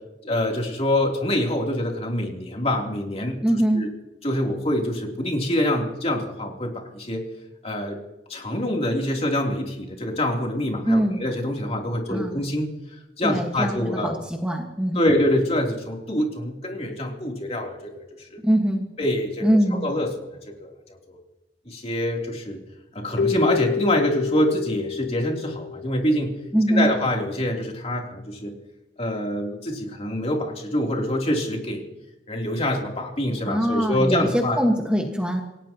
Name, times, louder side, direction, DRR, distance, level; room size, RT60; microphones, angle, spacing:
voice 1, 0.2-3.4 3.7-3.9 4.2-7.2 7.6-8.0 8.3-12.7 13.2-14.2 14.9-17.9 18.2-18.4 19.0-20.1 20.6-21.2 21.6-22.6 22.9-26.3 26.7-28.5 29.0-31.8 32.3-34.6, left 1 dB, 35° left, 0 dB, 3.3 m, -25 dB
voice 2, 3.4-3.9 10.9-11.2 12.1-12.4 13.2-15.1 18.4-18.8 19.4-19.9 26.5-26.9 33.4-35.4, equal, 5° right, 1 dB, 1.6 m, -22 dB
Keyboard (musical), 23.2-26.4, left 7 dB, 80° left, 0.5 m, -28 dB
28.0 x 17.0 x 3.0 m, 1.0 s
head